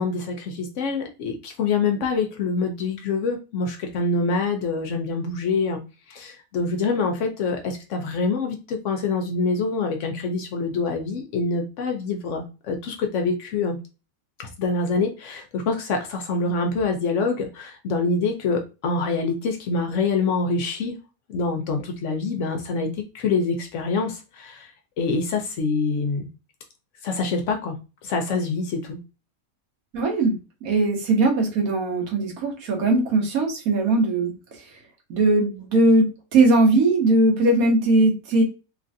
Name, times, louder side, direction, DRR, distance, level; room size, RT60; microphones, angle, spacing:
voice 1, 0.0-5.8 6.1-13.8 14.4-21.0 21.3-24.7 25.0-26.3 27.0-27.7 28.0-29.0, left 4 dB, 65° left, 4 dB, 0.8 m, -25 dB
voice 2, 29.9-34.6 35.1-38.4, right 2 dB, 80° right, 1 dB, 1.4 m, -20 dB
3.1 x 2.4 x 2.5 m, 0.30 s
omnidirectional pair, 1.5 m